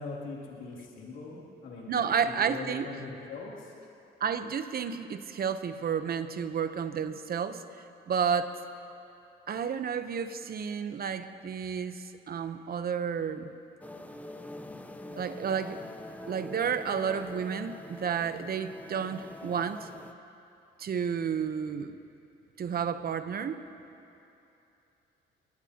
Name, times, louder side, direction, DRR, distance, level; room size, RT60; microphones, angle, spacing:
voice 1, 0.0-3.7, left 3 dB, 80° left, -5 dB, 2.9 m, -41 dB
voice 2, 1.9-2.9 4.2-7.6 8.1-8.5 9.5-13.5 15.2-15.8 16.3-19.9 20.8-22.0 22.6-23.6, right 7 dB, 50° right, 10 dB, 0.8 m, -31 dB
sound 1, 13.8-20.1, left 1 dB, 5° left, 0.8 m, -44 dB
23.0 x 19.0 x 2.9 m, 2.8 s
cardioid pair, 90°, 20 cm